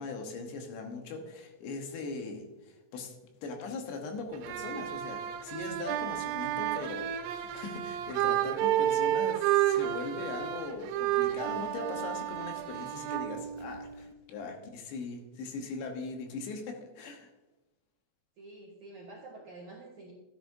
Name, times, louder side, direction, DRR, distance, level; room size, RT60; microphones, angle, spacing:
voice 1, 0.0-3.2 3.4-17.3, left 3 dB, 75° left, 3 dB, 3.3 m, -40 dB
sound 1, 4.3-14.1, right 12 dB, 85° right, 3.2 m, -31 dB
voice 2, 6.0-6.9 18.4-20.1, right 2 dB, 70° right, -3 dB, 1.8 m, -50 dB
13.0 x 10.0 x 2.7 m, 1.1 s
omnidirectional pair, 5.4 m